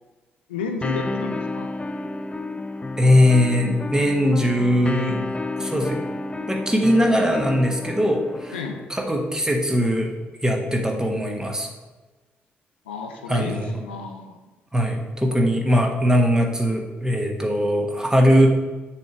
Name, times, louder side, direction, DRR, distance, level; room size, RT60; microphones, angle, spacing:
voice 1, 0.5-1.7 8.5-8.9 12.9-14.4, left 5 dB, 80° left, 5 dB, 0.5 m, -32 dB
sound 1, 0.8-8.9, left 2 dB, 20° left, 0.4 m, -30 dB
voice 2, 3.0-5.2 5.6-6.0 6.5-8.5 8.9-10.1 10.4-11.7 13.3-13.8 14.7-18.5, equal, 10° right, 1 dB, 1.4 m, -20 dB
6.9 x 3.3 x 6.0 m, 1.2 s
figure-of-eight pair, 40°, 6 cm